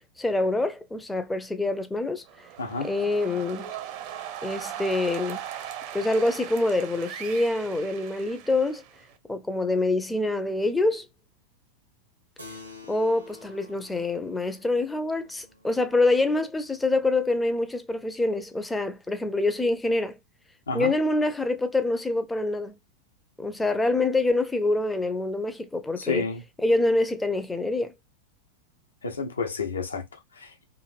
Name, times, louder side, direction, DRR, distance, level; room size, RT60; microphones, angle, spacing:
voice 1, 0.2-2.2 2.9-3.7 4.4-5.4 5.9-8.8 9.3-11.1 12.9-20.1 20.7-22.8 23.4-26.2 26.6-27.9, left 2 dB, 10° left, 0.5 m, -25 dB
sound 1, 2.3-9.2, right 10 dB, 45° right, 0.5 m, -39 dB
voice 2, 2.6-2.9 20.7-20.9 26.0-26.4 29.0-30.6, left 4 dB, 70° left, 0.7 m, -31 dB
Keyboard (musical), 12.4-17.3, left 3 dB, 85° right, 0.9 m, -50 dB
2.9 x 2.4 x 2.5 m
figure-of-eight pair, 90°, 0 cm